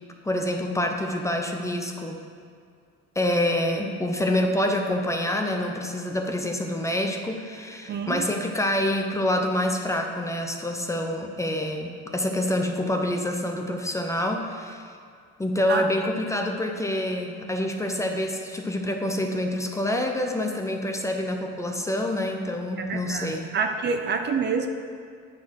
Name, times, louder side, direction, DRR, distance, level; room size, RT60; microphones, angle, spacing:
voice 1, 0.2-2.2 3.2-14.9 15.4-23.6, left 1 dB, 10° left, 3 dB, 0.6 m, -27 dB
voice 2, 7.9-8.2 15.7-15.8 22.8-24.7, right 5 dB, 35° right, 6 dB, 0.5 m, -27 dB
9.4 x 4.1 x 6.3 m, 2.2 s
cardioid pair, 130°, 29 cm